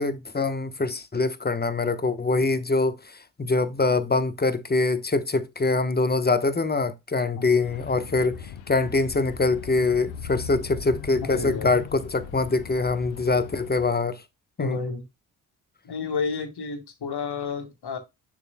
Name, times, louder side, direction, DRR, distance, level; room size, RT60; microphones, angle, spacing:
voice 1, 0.0-14.2 14.6-14.8, left 3 dB, 20° left, 1.1 m, -24 dB
sound 1, 7.6-13.9, left 7 dB, 75° left, 1.0 m, -39 dB
voice 2, 11.2-11.7 14.6-15.0 15.8-18.0, left 5 dB, 55° left, 2.1 m, -31 dB
6.7 x 6.6 x 2.2 m
hypercardioid pair, 45°, 46 cm